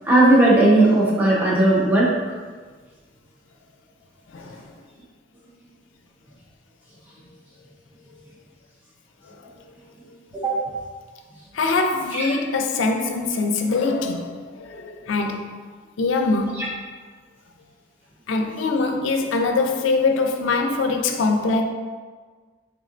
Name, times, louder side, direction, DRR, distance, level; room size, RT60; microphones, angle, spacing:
voice 1, 0.1-2.1 10.3-10.7 12.1-12.3 16.6-16.7, right 2 dB, 10° right, -6 dB, 0.7 m, -17 dB
voice 2, 4.3-4.7 9.3-9.4 11.5-15.5 16.0-16.8 18.3-21.6, left 3 dB, 85° left, 4 dB, 0.4 m, -23 dB
4.2 x 3.6 x 2.5 m, 1.5 s
head